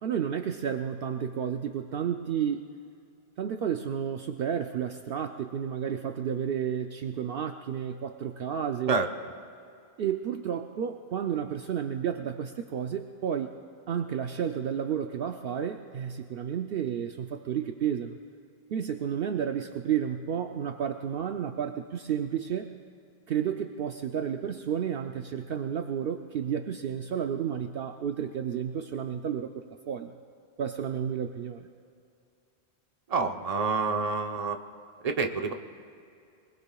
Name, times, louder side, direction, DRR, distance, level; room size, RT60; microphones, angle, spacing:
voice 1, 0.0-2.7 3.4-9.0 10.0-13.5 13.9-18.2 18.7-22.7 23.3-30.1 30.6-31.7, right 8 dB, 65° right, 6 dB, 0.8 m, -31 dB
voice 2, 33.1-34.6 35.0-35.5, right 4 dB, 40° right, 5 dB, 0.9 m, -27 dB
23.5 x 21.5 x 2.3 m, 2.5 s
omnidirectional pair, 1.1 m